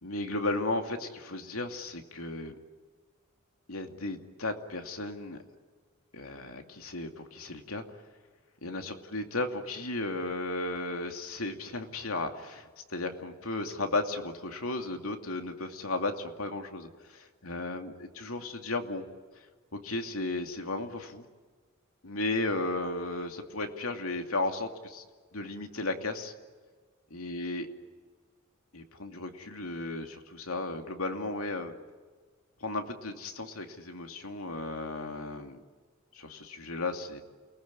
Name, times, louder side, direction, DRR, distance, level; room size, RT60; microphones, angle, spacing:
voice 1, 0.0-2.5 3.7-5.4 6.1-7.8 8.6-19.1 19.7-21.2 22.0-25.0 25.3-26.3 27.1-27.7 28.7-31.8 32.6-35.6 36.1-37.2, left 2 dB, 85° left, 5 dB, 2.7 m, -35 dB
29.0 x 19.5 x 9.8 m, 1.5 s
head